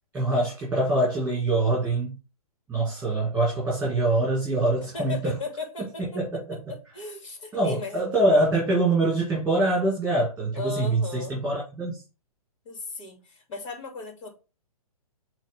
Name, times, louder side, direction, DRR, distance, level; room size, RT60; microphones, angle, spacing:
voice 1, 0.1-2.2 2.7-5.3 6.0-6.6 7.5-12.0, right 2 dB, 5° right, 2.3 m, -24 dB
voice 2, 4.9-6.4 6.7-8.0 10.5-11.4 12.6-14.3, left 3 dB, 55° left, 2.9 m, -36 dB
8.3 x 3.4 x 3.6 m
figure-of-eight pair, 125°, 19 cm